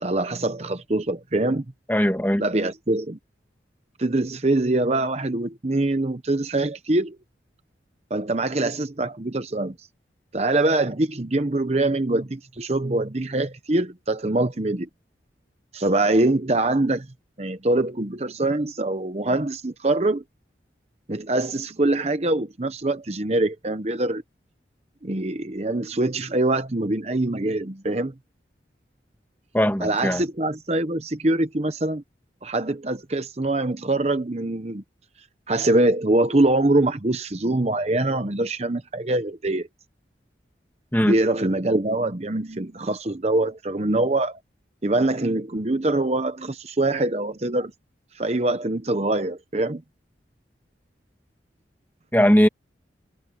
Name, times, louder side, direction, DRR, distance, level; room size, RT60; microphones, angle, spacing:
voice 1, 0.0-1.6 2.4-3.2 4.0-7.2 8.1-9.7 10.3-14.9 15.7-17.1 17.4-20.2 21.1-24.2 25.0-28.1 29.8-32.0 32.4-34.8 35.5-39.7 41.0-44.4 44.8-47.7 48.1-49.8, right 2 dB, 35° right, 0.9 m, -24 dB
voice 2, 1.9-2.4 29.5-30.2 40.9-41.2 52.1-52.5, equal, 10° left, 1.9 m, -19 dB
head